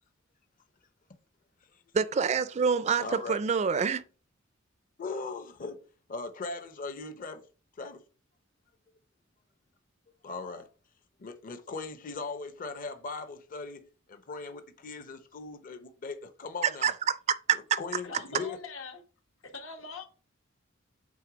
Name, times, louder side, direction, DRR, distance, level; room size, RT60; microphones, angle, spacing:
voice 1, 1.9-4.0 16.8-16.9 17.3-17.6, right 6 dB, 35° right, 0.4 m, -26 dB
voice 2, 3.0-3.4 5.0-5.8 6.1-7.4 7.8-8.0 10.2-10.7 11.2-13.8 14.1-16.1 16.4-16.9 17.8-18.6, left 4 dB, 45° left, 0.7 m, -38 dB
voice 3, 18.0-19.0 19.4-20.0, left 4 dB, 80° left, 1.5 m, -43 dB
7.7 x 3.3 x 5.0 m
head